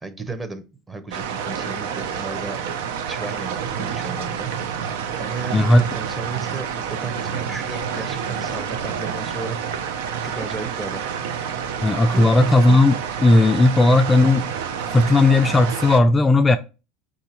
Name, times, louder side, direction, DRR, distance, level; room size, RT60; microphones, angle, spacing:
voice 1, 0.0-2.6 3.1-4.5 5.2-9.6 10.2-11.1 12.1-12.4, right 3 dB, 15° right, 0.8 m, -34 dB
sound 1, 1.1-16.0, right 7 dB, 80° right, 0.5 m, -28 dB
voice 2, 5.5-5.8 11.8-14.5 14.9-16.6, left 2 dB, 20° left, 0.3 m, -16 dB
4.5 x 2.7 x 4.3 m
supercardioid pair, 95°, 0 cm